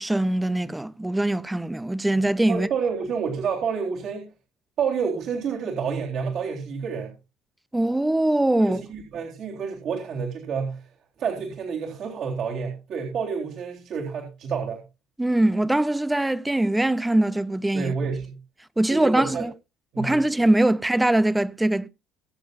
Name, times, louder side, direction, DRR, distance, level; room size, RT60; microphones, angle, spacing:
voice 1, 0.0-2.7 7.7-8.8 15.2-17.9 18.8-19.5 20.0-21.9, right 1 dB, 5° right, 0.7 m, -22 dB
voice 2, 2.5-4.3 4.8-7.1 8.6-10.9 11.2-14.8 17.7-18.4 18.9-19.5 19.9-20.2, right 6 dB, 55° right, 3.7 m, -29 dB
23.0 x 7.6 x 2.6 m
cardioid pair, 135°, 0 cm